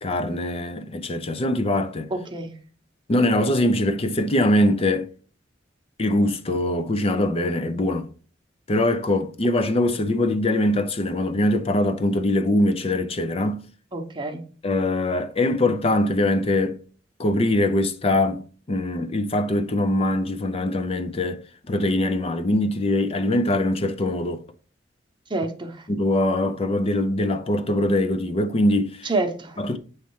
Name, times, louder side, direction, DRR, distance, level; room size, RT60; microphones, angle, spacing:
voice 1, 0.0-2.1 3.1-5.1 6.0-8.1 8.7-13.6 14.6-16.8 17.2-21.4 21.7-24.4 25.9-29.1 29.6-29.8, left 1 dB, 30° left, 0.5 m, -22 dB
voice 2, 2.1-2.5 13.9-14.4 25.3-25.9 29.0-29.6, right 2 dB, 25° right, 0.9 m, -28 dB
8.1 x 3.2 x 4.6 m
head